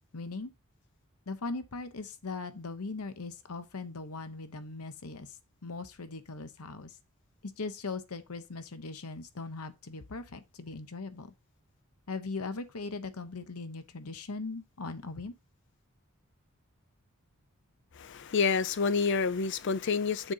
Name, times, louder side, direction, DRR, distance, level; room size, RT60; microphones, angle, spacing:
voice 1, 0.1-0.5 1.3-7.0 7.4-11.3 12.1-15.3, left 3 dB, 90° left, 1.0 m, -39 dB
voice 2, 17.9-20.3, left 5 dB, 55° left, 0.5 m, -28 dB
7.0 x 3.9 x 5.5 m
head